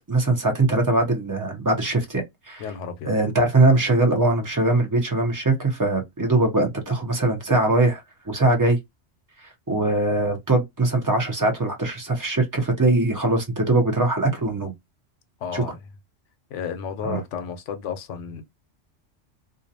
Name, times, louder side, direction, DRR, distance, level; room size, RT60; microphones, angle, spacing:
voice 1, 0.1-2.6 3.1-8.8 9.7-14.7 15.5-15.6 17.0-17.2, right 2 dB, 20° right, 0.5 m, -21 dB
voice 2, 2.6-3.1 15.4-15.7 16.5-18.4, left 7 dB, 80° left, 0.9 m, -32 dB
2.5 x 2.1 x 2.6 m
omnidirectional pair, 1.2 m